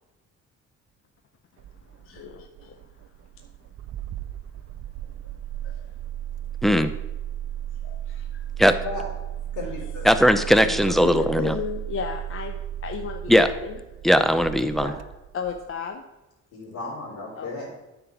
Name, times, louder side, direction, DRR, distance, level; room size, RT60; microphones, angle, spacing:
Engine starting, 1.6-15.7, right 11 dB, 55° right, 0.5 m, -35 dB
voice 1, 2.0-2.8 5.6-5.9 7.8-8.5 11.0-13.8 15.3-16.0 17.3-17.5, left 7 dB, 45° left, 5 dB, 0.6 m, -34 dB
voice 2, 9.5-10.1 10.5-10.9 14.8-14.9 16.5-17.7, left 3 dB, 60° left, -6 dB, 3.1 m, -35 dB
voice 3, 10.1-11.5 13.3-13.5 14.0-14.9, equal, ahead, 10 dB, 0.5 m, -18 dB
9.3 x 4.0 x 5.9 m, 0.99 s
cardioid pair, 90°, 30 cm